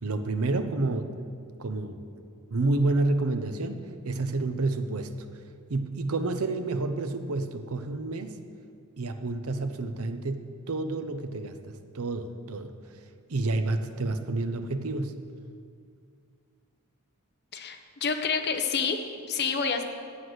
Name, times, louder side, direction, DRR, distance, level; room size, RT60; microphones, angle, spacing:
voice 1, 0.0-1.3 1.6-2.1 2.5-5.1 5.7-8.4 9.0-12.7 13.3-15.2, right 2 dB, 75° right, 9 dB, 0.7 m, -29 dB
voice 2, 17.5-19.0 19.3-19.8, left 5 dB, 50° left, 5 dB, 0.8 m, -28 dB
9.6 x 7.8 x 6.4 m, 2.2 s
head